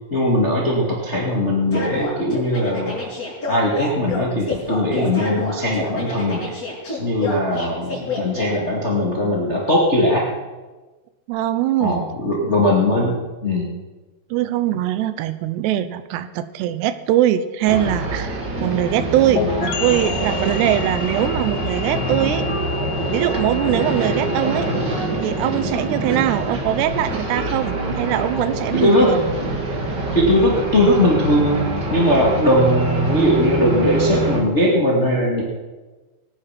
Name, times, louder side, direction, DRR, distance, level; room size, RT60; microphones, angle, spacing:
voice 1, 0.1-3.1 3.5-6.4 7.0-10.2 11.8-13.7 23.7-23.9 28.7-29.2 30.1-31.6 31.9-35.4, left 1 dB, 50° left, -3 dB, 0.7 m, -19 dB
sound 1, 1.7-8.5, left 3 dB, 35° left, 6.7 m, -29 dB
voice 2, 11.3-12.1 14.3-22.4 23.1-24.7 25.2-29.2, right 12 dB, 85° right, 12 dB, 2.5 m, -22 dB
sound 2, 17.7-34.4, right 2 dB, 50° right, 1.3 m, -25 dB
sound 3, 19.4-26.9, left 7 dB, 85° left, 3.8 m, -32 dB
22.0 x 9.8 x 5.9 m, 1.2 s
omnidirectional pair, 5.6 m